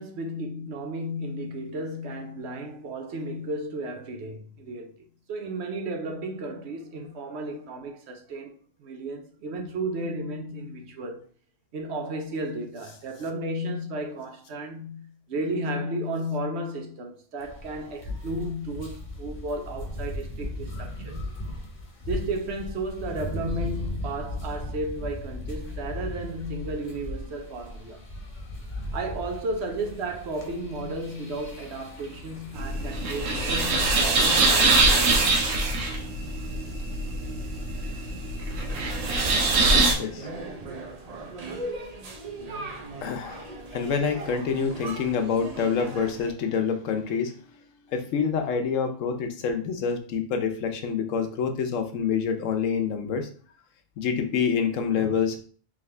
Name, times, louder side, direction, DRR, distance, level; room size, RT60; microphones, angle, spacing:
voice 1, 0.0-4.9 5.3-8.5 8.8-11.3 11.7-21.2 22.1-28.0 28.9-35.5, right 1 dB, 65° right, 0.9 m, -33 dB
sound 1, 17.4-36.4, left 1 dB, 40° left, 1.0 m, -38 dB
sound 2, 32.5-39.9, right 3 dB, 90° right, 1.1 m, -23 dB
sound 3, 38.7-46.3, right 2 dB, 45° right, 0.5 m, -38 dB
voice 2, 39.9-40.3 43.0-47.4 47.9-53.3 54.0-55.4, left 6 dB, 85° left, 1.1 m, -27 dB
3.7 x 3.2 x 3.2 m
omnidirectional pair, 1.3 m